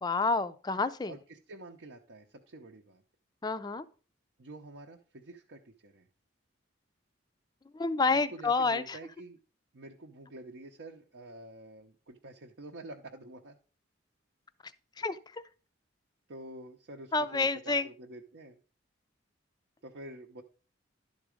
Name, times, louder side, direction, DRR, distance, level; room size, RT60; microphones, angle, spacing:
voice 1, 0.0-1.1 3.4-3.8 7.7-8.8 15.0-15.2 17.1-17.8, left 3 dB, 20° left, 13 dB, 0.4 m, -28 dB
voice 2, 1.1-3.0 4.4-6.1 8.3-9.4 9.7-13.6 16.3-18.6 19.8-20.4, right 1 dB, 65° right, 1 dB, 0.7 m, -48 dB
11.5 x 4.0 x 4.9 m, 0.37 s
head